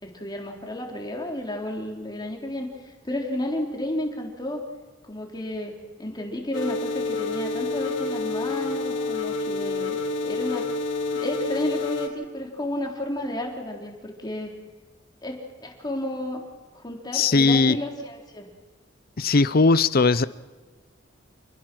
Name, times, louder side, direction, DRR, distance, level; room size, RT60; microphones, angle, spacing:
voice 1, 0.0-4.7 5.0-10.7 11.2-14.5 15.2-16.4 16.7-18.5, left 1 dB, 20° left, 1 dB, 3.6 m, -32 dB
sound 1, 6.5-12.1, left 3 dB, 85° left, 3.7 m, -28 dB
voice 2, 17.1-17.8 19.2-20.3, left 3 dB, 50° left, 17 dB, 0.7 m, -19 dB
28.0 x 19.5 x 6.2 m, 1.3 s
head